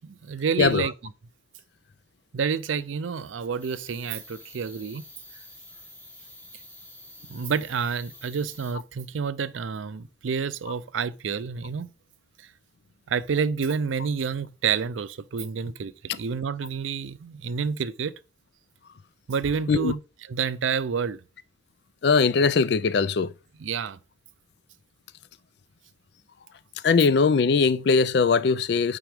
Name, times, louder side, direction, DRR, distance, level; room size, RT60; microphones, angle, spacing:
voice 1, 0.0-0.9 2.3-5.0 7.3-11.9 13.1-18.1 19.3-20.0 20.3-21.2 23.6-24.0, right 6 dB, 85° right, 0.5 m, -29 dB
voice 2, 0.6-0.9 19.7-19.9 22.0-23.3 26.8-29.0, left 5 dB, 55° left, 0.4 m, -21 dB
sound 1, 3.6-8.7, left 1 dB, 10° left, 1.5 m, -48 dB
9.2 x 3.8 x 3.5 m
head